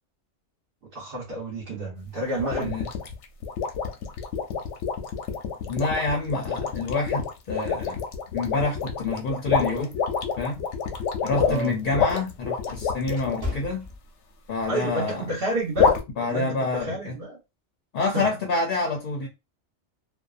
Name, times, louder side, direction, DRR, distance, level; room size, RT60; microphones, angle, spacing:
voice 1, 0.9-2.8 11.5-11.8 14.6-17.4 18.1-18.3, right 2 dB, 50° right, 1.0 m, -30 dB
sound 1, 2.4-13.4 15.8-16.0, left 6 dB, 90° left, 0.9 m, -27 dB
voice 2, 5.7-8.0 8.3-9.9 10.4-10.6 11.2-13.9 14.5-15.2 16.2-17.2 17.9-19.3, left 3 dB, 55° left, 0.6 m, -27 dB
sound 2, 11.8-14.6 15.0-15.3 15.9-16.2, left 3 dB, 20° right, 0.8 m, -37 dB
2.6 x 2.2 x 2.3 m
omnidirectional pair, 1.2 m